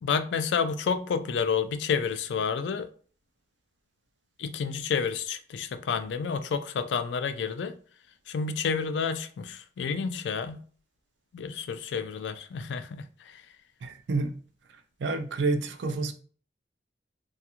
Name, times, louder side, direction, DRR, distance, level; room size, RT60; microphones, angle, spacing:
voice 1, 0.0-2.9 4.4-7.8 8.3-10.6 11.3-13.5, left 6 dB, 75° left, 0.3 m, -30 dB
voice 2, 13.8-14.4 15.0-16.1, right 3 dB, 75° right, 0.4 m, -28 dB
2.4 x 2.3 x 2.8 m
head